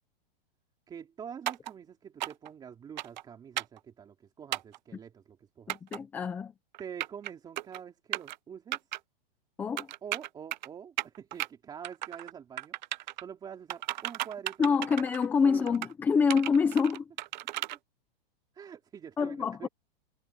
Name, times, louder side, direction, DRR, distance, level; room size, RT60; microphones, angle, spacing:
voice 1, 0.9-5.8 6.8-8.8 10.0-15.0 15.4-15.8 17.7-17.8 18.5-19.7, right 8 dB, 15° right, 3.3 m, -46 dB
sound 1, 1.5-1.7 2.2-2.5 3.0-3.2 3.6-3.8 4.5-4.8 5.7-6.0 6.7-7.3 7.6-7.8 8.1-8.4 8.7-9.0 9.8-10.7 11.0-11.5 11.8-12.3 12.6-13.2 13.7-15.3 15.7-15.9 16.3-17.8, right 15 dB, 50° right, 0.5 m, -35 dB
voice 2, 5.7-6.5 9.6-9.9 14.6-17.0 19.2-19.7, left 5 dB, 5° left, 0.6 m, -26 dB
supercardioid pair, 165°, 30 cm